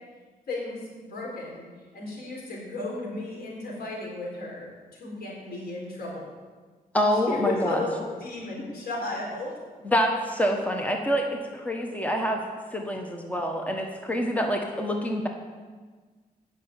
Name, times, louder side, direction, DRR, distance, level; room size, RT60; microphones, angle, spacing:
voice 1, 0.5-1.7 1.9-6.3 7.1-9.5, left 2 dB, 90° left, -2 dB, 3.9 m, -34 dB
voice 2, 6.9-7.8 9.8-12.4 12.7-15.3, equal, 10° left, 2 dB, 1.3 m, -26 dB
9.8 x 6.6 x 8.9 m, 1.4 s
wide cardioid pair, 105°, 16 cm